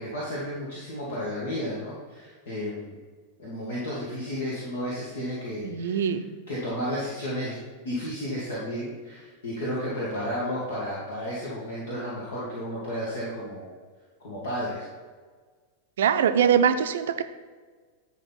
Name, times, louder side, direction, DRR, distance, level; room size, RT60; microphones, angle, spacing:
voice 1, 0.0-2.9 3.4-6.1 6.5-7.6 7.8-13.7 14.2-14.9, equal, 60° left, -7 dB, 2.1 m, -32 dB
voice 2, 5.6-6.2 16.0-17.2, right 8 dB, 60° right, 9 dB, 0.6 m, -22 dB
10.5 x 5.3 x 4.2 m, 1.5 s
figure-of-eight pair, 90°, 0 cm